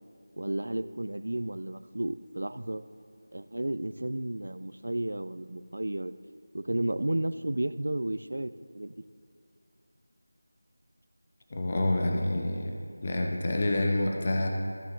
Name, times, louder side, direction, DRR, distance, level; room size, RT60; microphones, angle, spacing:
voice 1, 0.4-2.8 3.3-6.1 6.5-8.9, right 1 dB, 75° right, 14 dB, 0.4 m, -32 dB
voice 2, 11.5-12.7 13.0-14.5, left 1 dB, 20° left, 2 dB, 0.5 m, -27 dB
15.0 x 10.5 x 2.4 m, 2.3 s
figure-of-eight pair, 180°, 0 cm